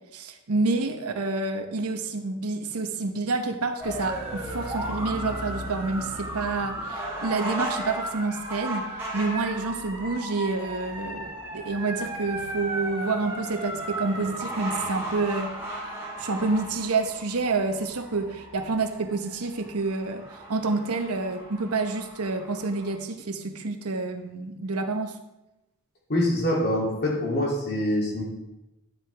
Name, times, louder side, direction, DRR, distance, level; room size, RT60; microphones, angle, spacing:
voice 1, 0.1-25.2, right 3 dB, 90° right, 6 dB, 1.0 m, -28 dB
sound 1, 3.8-22.9, right 1 dB, 10° right, 3.9 m, -35 dB
voice 2, 26.1-28.2, left 1 dB, 45° left, -3 dB, 2.8 m, -25 dB
11.5 x 7.8 x 3.4 m, 0.95 s
head